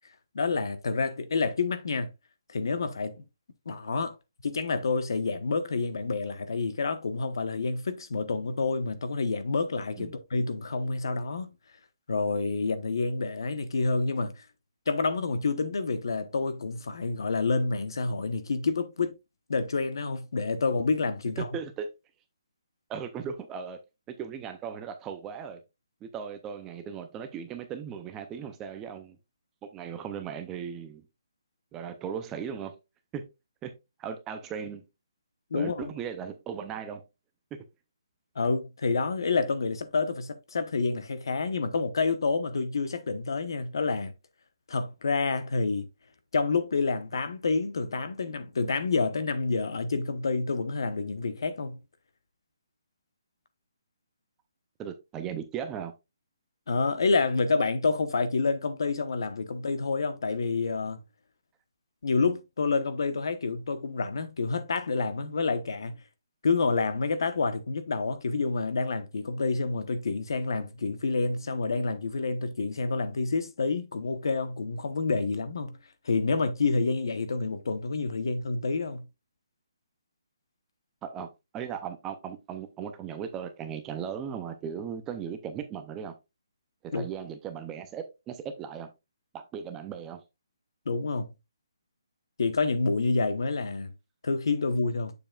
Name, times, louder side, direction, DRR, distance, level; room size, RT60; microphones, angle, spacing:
voice 1, 0.3-2.1 2.5-3.2 3.6-4.2 4.4-11.5 12.1-14.4 14.9-19.1 19.5-21.5 35.5-35.9 38.3-44.1 44.7-45.9 46.3-51.8 56.7-61.0 62.0-66.0 66.4-75.8 76.0-79.1 86.9-87.1 90.8-91.3 92.4-93.9 94.2-95.1, left 4 dB, 60° left, 1.1 m, -28 dB
voice 2, 21.4-21.9 22.9-23.8 24.1-25.6 26.0-29.2 29.7-31.0 31.7-32.7 33.1-33.3 33.6-33.7 34.0-34.8 35.5-37.0 54.8-55.9 81.0-86.1 86.8-88.9 89.3-90.2, right 7 dB, 10° right, 0.5 m, -37 dB
7.8 x 6.9 x 2.4 m
hypercardioid pair, 175°, 3 cm